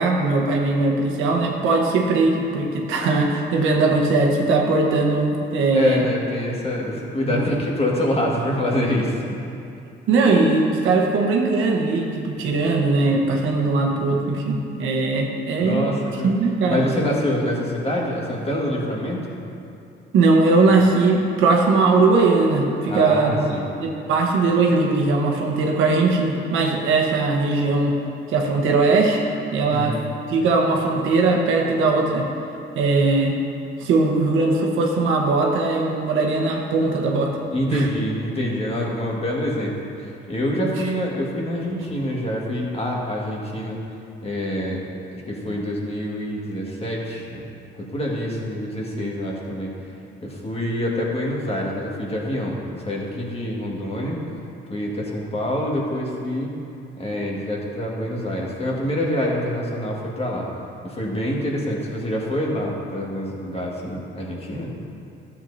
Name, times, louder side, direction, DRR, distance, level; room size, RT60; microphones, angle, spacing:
voice 1, 0.0-6.0 7.3-7.4 10.1-15.9 16.2-17.1 20.1-28.0 28.3-29.2 29.5-30.0 30.3-32.2 32.7-33.4 33.8-37.3 37.7-37.9, right 3 dB, 90° right, 0 dB, 1.1 m, -20 dB
voice 2, 5.7-9.4 15.6-16.3 16.7-19.4 22.9-23.7 29.7-30.1 37.5-43.8 44.2-44.8 45.3-47.4 47.9-49.7 50.2-54.2 54.7-56.5 57.0-60.5 60.8-64.7, left 1 dB, 30° left, -3 dB, 1.8 m, -26 dB
12.5 x 7.4 x 2.7 m, 2.6 s
cardioid pair, 90°, 20 cm